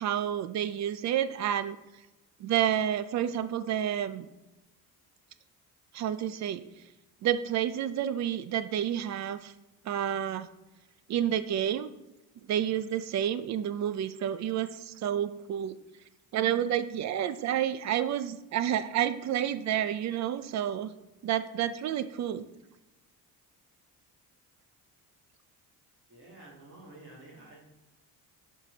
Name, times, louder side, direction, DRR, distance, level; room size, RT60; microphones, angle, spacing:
voice 1, 0.0-1.8 2.4-4.3 5.9-6.6 7.2-9.5 9.8-10.5 11.1-11.9 12.5-15.7 16.3-20.9 21.2-22.4, right 10 dB, 45° right, 13 dB, 0.6 m, -29 dB
voice 2, 26.1-27.7, right 2 dB, 30° right, -3 dB, 2.3 m, -50 dB
11.5 x 4.7 x 5.2 m, 1.0 s
cardioid pair, 165°, 37 cm